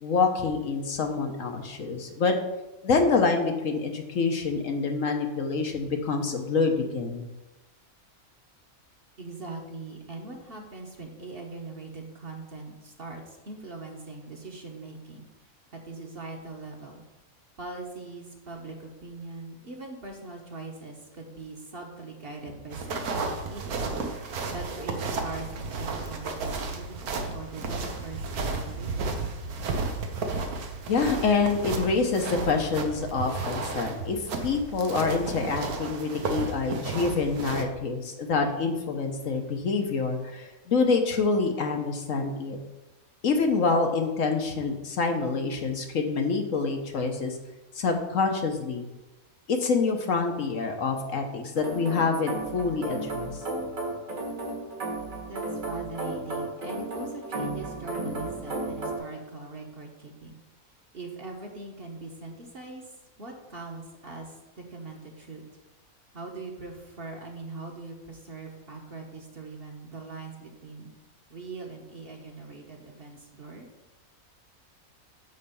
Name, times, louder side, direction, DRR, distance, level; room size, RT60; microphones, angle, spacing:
voice 1, 0.0-2.3 2.8-7.3 30.9-42.6 43.2-47.4 47.7-48.9 49.5-53.4, left 4 dB, 65° left, 3 dB, 1.3 m, -26 dB
voice 2, 9.2-15.3 15.7-17.0 17.6-23.9 24.2-29.2 55.3-60.4 60.9-62.8 63.2-65.4 66.1-70.9 71.3-73.7, right 3 dB, 45° right, 1 dB, 1.3 m, -41 dB
sound 1, 22.7-37.6, right 3 dB, 85° right, 1.4 m, -33 dB
sound 2, 51.6-59.0, right 2 dB, 65° right, 2.2 m, -34 dB
9.4 x 3.3 x 6.8 m, 1.0 s
omnidirectional pair, 1.5 m